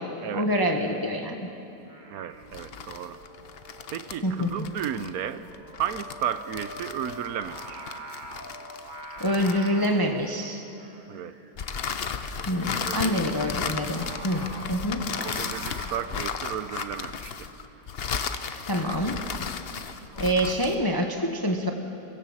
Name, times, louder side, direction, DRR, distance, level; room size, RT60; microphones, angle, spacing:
voice 1, 0.3-1.5 4.2-4.7 9.2-10.6 12.5-15.2 18.7-19.2 19.8-19.9 20.2-21.7, equal, 15° left, 4 dB, 1.0 m, -26 dB
Singing, 1.8-20.2, right 1 dB, 30° right, 1.7 m, -46 dB
voice 2, 2.1-3.2 3.9-5.5 5.8-7.9 11.1-11.4 12.8-13.2 15.2-17.5, right 9 dB, 70° right, 13 dB, 1.2 m, -33 dB
sound 1, 2.4-10.2 11.6-20.9, left 6 dB, 50° left, 0.8 m, -35 dB
25.5 x 16.5 x 7.3 m, 2.9 s
omnidirectional pair, 1.7 m